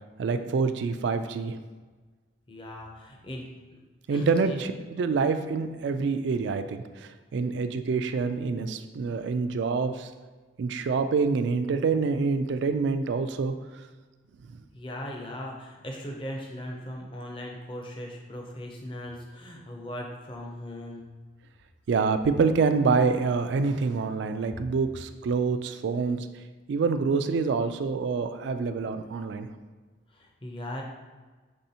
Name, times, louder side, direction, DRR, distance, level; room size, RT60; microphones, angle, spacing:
voice 1, 0.2-1.6 4.1-10.1 10.6-13.5 14.5-14.6 21.9-26.3 26.7-29.5, right 4 dB, 65° right, 9 dB, 0.3 m, -26 dB
voice 2, 2.5-3.8 4.1-4.6 14.7-21.1 30.1-30.8, equal, 25° left, 0 dB, 0.5 m, -39 dB
5.4 x 3.3 x 2.8 m, 1.3 s
head